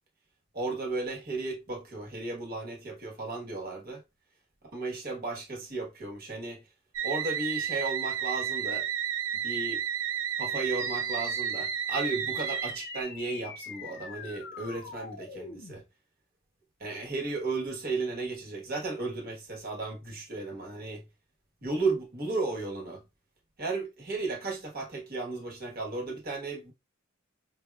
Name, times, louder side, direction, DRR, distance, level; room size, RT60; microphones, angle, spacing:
voice 1, 0.5-4.0 4.7-6.6 7.0-8.9 9.4-9.8 10.4-15.8 16.8-21.0 21.6-23.0 23.6-26.7, right 3 dB, 50° right, 1.2 m, -34 dB
sound 1, 6.9-13.0, right 9 dB, 90° right, 0.5 m, -32 dB
sound 2, 10.8-15.8, left 6 dB, 55° left, 0.6 m, -43 dB
4.9 x 2.1 x 2.3 m
head